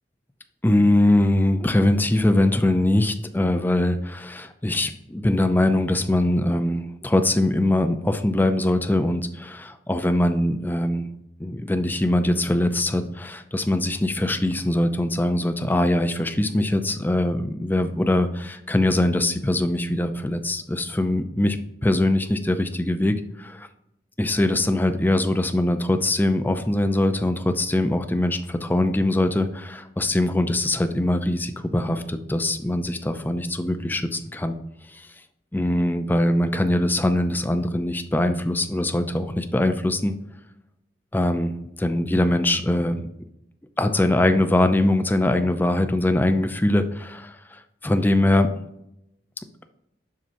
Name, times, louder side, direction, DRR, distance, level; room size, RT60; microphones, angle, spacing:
voice 1, 0.6-11.1 11.4-23.7 24.2-34.6 35.5-40.1 41.1-41.5 41.8-43.1 43.8-47.3 47.8-48.5, left 1 dB, 10° left, 8 dB, 0.5 m, -22 dB
7.5 x 5.5 x 2.7 m, 0.81 s
head